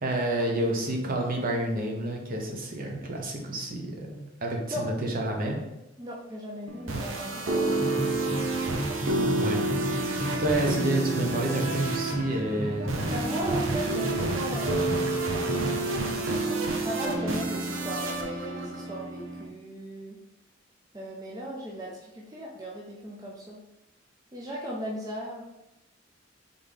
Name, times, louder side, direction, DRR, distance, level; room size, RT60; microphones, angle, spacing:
voice 1, 0.0-5.6 9.3-12.9, right 1 dB, 45° right, 1 dB, 0.8 m, -29 dB
voice 2, 6.0-7.7 13.1-15.0 16.8-20.2 20.9-23.6 24.3-25.4, equal, 20° right, -4 dB, 0.5 m, -37 dB
sound 1, 6.7-19.5, right 2 dB, 85° right, 0.7 m, -29 dB
sound 2, 7.7-16.5, right 1 dB, 15° left, 0.9 m, -36 dB
4.1 x 3.5 x 3.5 m, 0.92 s
head